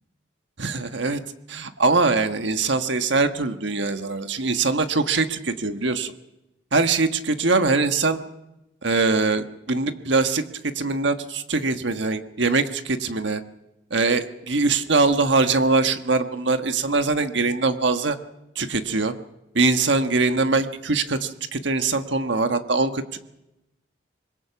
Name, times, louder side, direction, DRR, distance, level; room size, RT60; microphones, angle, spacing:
voice 1, 0.6-1.2 1.5-6.1 6.7-8.2 8.8-10.4 10.7-13.4 13.9-18.2 18.5-19.1 19.5-23.2, right 3 dB, 70° right, 8 dB, 1.4 m, -22 dB
25.5 x 21.5 x 6.0 m, 0.92 s
head